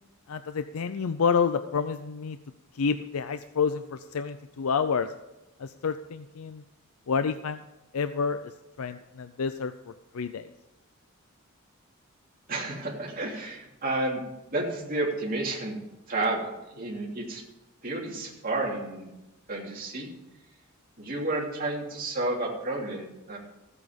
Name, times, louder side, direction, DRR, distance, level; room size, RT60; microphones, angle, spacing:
voice 1, 0.3-2.4 2.7-5.1 5.6-6.6 7.1-7.6 7.9-8.4 8.8-10.5, left 6 dB, 85° left, 11 dB, 0.5 m, -29 dB
voice 2, 12.5-14.2 14.5-15.7 16.1-17.4 17.8-19.1 19.5-20.1 21.0-23.4, right 2 dB, 40° right, -2 dB, 3.0 m, -31 dB
15.0 x 8.4 x 5.2 m, 0.97 s
head